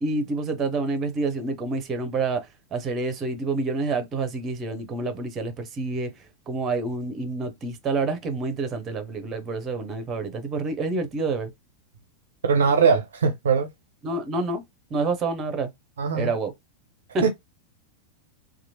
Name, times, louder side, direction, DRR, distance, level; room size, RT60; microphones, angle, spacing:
voice 1, 0.0-2.4 2.7-6.1 6.5-11.5 14.0-14.6 14.9-15.7 16.1-16.5 17.1-17.2, right 3 dB, 25° right, 0.7 m, -28 dB
voice 2, 12.4-13.7 16.0-16.3 17.2-17.3, right 5 dB, 65° right, 0.5 m, -21 dB
2.9 x 2.3 x 2.8 m
figure-of-eight pair, 90°, 0 cm